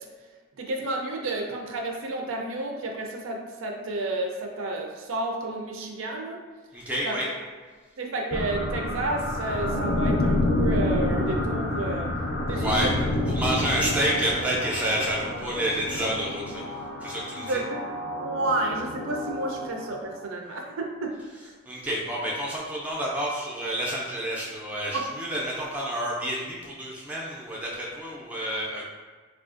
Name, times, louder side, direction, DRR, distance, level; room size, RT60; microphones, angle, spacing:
voice 1, 0.6-6.4 7.0-7.2 8.0-12.1 12.5-12.9 17.3-21.5 24.9-25.1, right 2 dB, 75° right, 1 dB, 0.4 m, -31 dB
voice 2, 6.7-7.3 12.5-13.0 13.3-16.7 17.0-17.6 21.7-28.8, equal, 5° right, -5 dB, 0.3 m, -29 dB
sound 1, 8.3-20.3, left 1 dB, 55° left, 0.4 m, -29 dB
3.6 x 2.4 x 2.4 m, 1.4 s
head